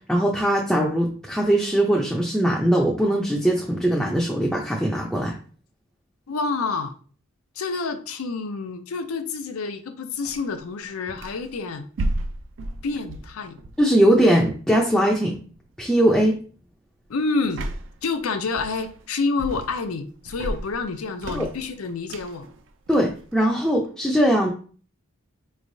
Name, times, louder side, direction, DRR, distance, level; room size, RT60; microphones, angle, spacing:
voice 1, 0.1-5.3 13.8-15.4 15.8-16.3 21.3-21.5 22.9-24.5, right 1 dB, 5° left, -3 dB, 0.4 m, -20 dB
voice 2, 6.3-6.9 7.6-11.9 12.8-13.6 17.1-17.6 18.0-22.5, left 4 dB, 90° left, 8 dB, 0.5 m, -28 dB
sound 1, 10.2-11.5 12.0-14.4 15.4-15.7 16.1-16.4 17.4-18.1 18.6-19.1 19.4-20.0 20.3-23.9, right 1 dB, 60° right, 0.4 m, -33 dB
4.4 x 3.1 x 2.6 m, 0.41 s
head